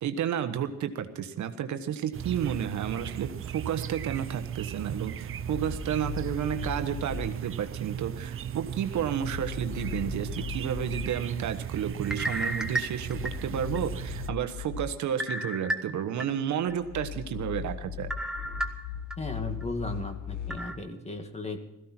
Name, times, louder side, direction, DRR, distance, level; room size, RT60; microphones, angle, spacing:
voice 1, 0.0-18.1, right 9 dB, 70° right, 9 dB, 1.3 m, -31 dB
sound 1, 2.1-14.3, right 9 dB, 45° right, 0.6 m, -37 dB
sound 2, 5.2-7.2 9.0-11.0 12.9-14.8 16.7-20.5, left 8 dB, 80° left, 7.0 m, -39 dB
sound 3, 12.0-13.8 14.3-14.4 15.2-16.2 16.7-16.8 18.1-19.2 19.6-19.7 20.5-20.8, right 1 dB, ahead, 1.5 m, -33 dB
voice 2, 19.2-21.6, left 2 dB, 20° left, 6 dB, 2.1 m, -36 dB
17.0 x 15.0 x 4.5 m, 0.90 s
cardioid pair, 90°, 30 cm